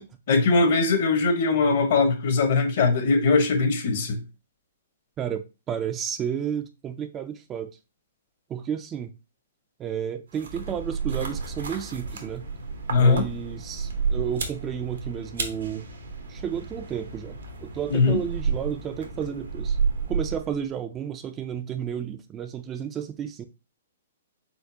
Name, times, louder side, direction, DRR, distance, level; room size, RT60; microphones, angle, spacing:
voice 1, 0.3-4.2 12.9-13.3 17.9-18.2, left 4 dB, 55° left, 1.1 m, -21 dB
voice 2, 5.2-7.7 8.5-9.1 9.8-12.5 13.0-15.9 16.3-19.8 20.1-23.4, right 8 dB, 20° right, 0.4 m, -32 dB
sound 1, 10.3-20.7, right 5 dB, 75° right, 1.0 m, -31 dB
4.4 x 3.8 x 2.8 m
hypercardioid pair, 125°, 0 cm